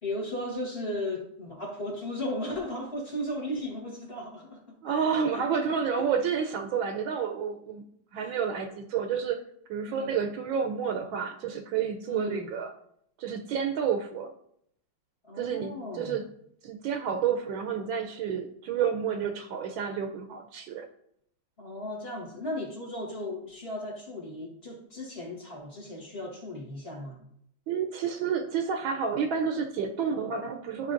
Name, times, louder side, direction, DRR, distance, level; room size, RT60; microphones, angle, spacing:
voice 1, 0.0-5.6 6.0-6.1 8.1-8.4 9.9-10.2 12.0-12.5 15.2-16.2 21.6-27.2, left 1 dB, 35° left, -2 dB, 1.4 m, -36 dB
voice 2, 4.8-7.8 8.1-9.4 9.7-12.7 13.2-14.3 15.3-16.2 16.6-20.8 27.7-30.9, right 7 dB, 75° right, 4 dB, 1.4 m, -30 dB
12.0 x 5.0 x 2.5 m, 0.71 s
omnidirectional pair, 2.2 m